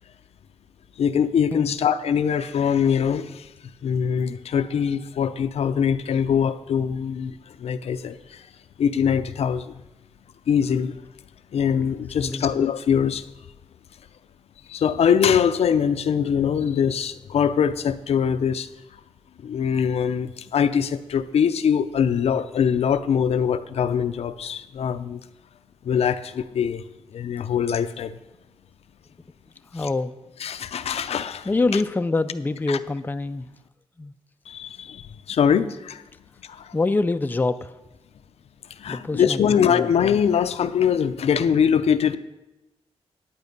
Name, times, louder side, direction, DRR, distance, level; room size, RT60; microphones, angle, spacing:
voice 1, 1.0-3.5 3.8-8.5 8.8-9.8 10.5-11.0 11.5-13.3 14.7-18.7 19.4-25.2 25.8-26.8 27.1-28.2 30.4-31.5 32.7-32.8 34.5-36.0 36.4-36.7 38.7-42.2, left 7 dB, 75° left, 10 dB, 0.6 m, -23 dB
voice 2, 12.2-12.6 29.7-30.2 31.5-33.5 34.0-34.1 36.7-37.7 38.9-39.9, left 3 dB, 15° left, 10 dB, 0.4 m, -25 dB
10.5 x 8.8 x 5.3 m, 1.0 s
cardioid pair, 90°, 11 cm